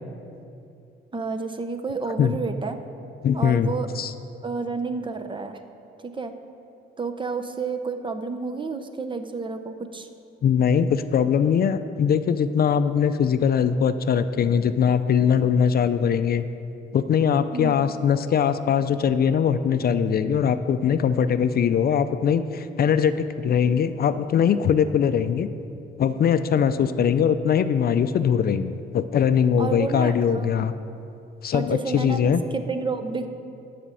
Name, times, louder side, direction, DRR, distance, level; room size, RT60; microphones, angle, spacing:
voice 1, 1.1-2.8 3.3-3.9 4.4-5.6 6.0-6.3 7.0-10.1 17.5-17.9 29.6-30.7 31.5-33.3, right 4 dB, 25° right, 8 dB, 0.7 m, -30 dB
voice 2, 3.2-4.1 10.4-16.4 16.9-25.5 26.0-30.7 31.4-32.4, left 7 dB, 50° left, 11 dB, 0.5 m, -21 dB
11.0 x 5.1 x 8.3 m, 2.6 s
cardioid pair, 90°, 20 cm